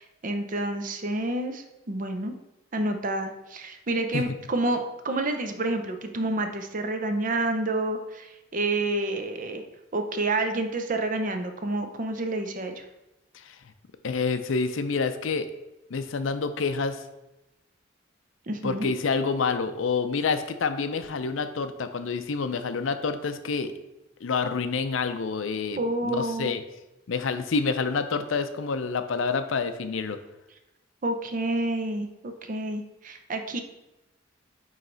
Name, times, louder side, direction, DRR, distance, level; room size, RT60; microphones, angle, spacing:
voice 1, 0.0-2.3 2.7-9.6 9.9-12.8 18.5-18.9 25.8-26.5 31.0-33.6, right 2 dB, 40° right, 6 dB, 0.6 m, -29 dB
voice 2, 14.0-15.5 15.9-17.0 18.6-23.7 24.2-26.6 27.1-30.2, left 4 dB, 85° left, 10 dB, 0.5 m, -28 dB
8.9 x 3.2 x 3.9 m, 0.97 s
head